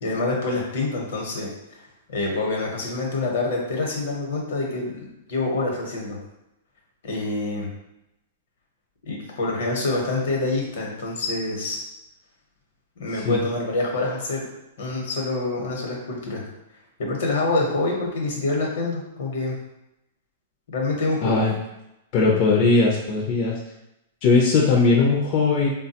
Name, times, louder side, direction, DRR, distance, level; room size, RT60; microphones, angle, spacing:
voice 1, 0.0-1.8 2.1-6.2 7.0-7.7 9.0-11.8 13.0-14.4 14.8-16.4 17.0-19.6 20.7-21.4, left 2 dB, 75° left, -1 dB, 1.0 m, -26 dB
voice 2, 21.2-21.5 22.1-23.6 24.2-25.7, left 3 dB, 45° left, -3 dB, 0.5 m, -19 dB
3.4 x 2.2 x 2.8 m, 0.91 s
hypercardioid pair, 130°, 0 cm